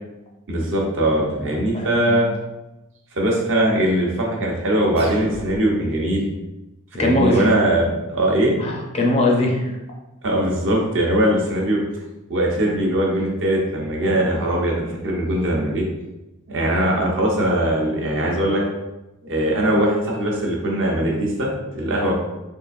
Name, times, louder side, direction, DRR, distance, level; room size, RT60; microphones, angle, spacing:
voice 1, 0.5-2.3 3.1-6.3 7.0-8.6 10.2-11.8 12.3-15.8 16.5-18.6 19.2-22.1, right 1 dB, 55° right, -2 dB, 0.8 m, -21 dB
voice 2, 1.4-2.2 7.0-7.4 8.6-9.7, left 1 dB, 30° left, -1 dB, 0.5 m, -21 dB
sound 1, 5.0-6.0, right 2 dB, 25° right, 0.3 m, -37 dB
3.7 x 3.2 x 2.5 m, 0.99 s
head